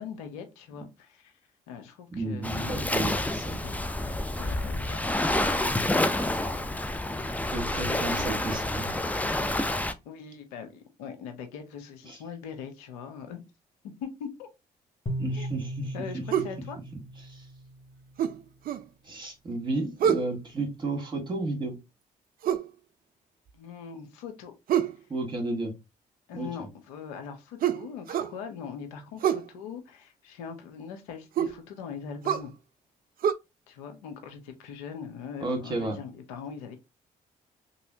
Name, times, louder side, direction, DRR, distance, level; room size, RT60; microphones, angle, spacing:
voice 1, 0.0-1.4 1.7-3.2 3.5-5.1 7.8-8.0 9.5-13.4 13.8-14.5 15.3-15.5 15.9-16.8 23.5-24.5 26.3-32.5 33.7-36.8, left 6 dB, 85° left, 0.6 m, -41 dB
voice 2, 2.1-3.6 7.5-8.9 12.1-12.2 15.2-16.2 17.2-17.5 19.0-21.8 25.1-25.7 26.3-26.7 35.4-36.0, right 2 dB, 25° right, 1.8 m, -32 dB
Waves surf, 2.4-9.9, left 1 dB, 10° left, 0.5 m, -28 dB
sound 1, 15.1-18.3, right 1 dB, 30° left, 1.2 m, -37 dB
sound 2, 16.3-16.6 18.2-18.9 20.0-20.3 22.4-22.7 24.7-25.0 27.6-28.4 29.2-29.5 31.4-31.6 32.2-32.5 33.2-33.3, right 9 dB, 50° right, 0.4 m, -26 dB
3.1 x 2.7 x 2.7 m
hypercardioid pair, 45°, 19 cm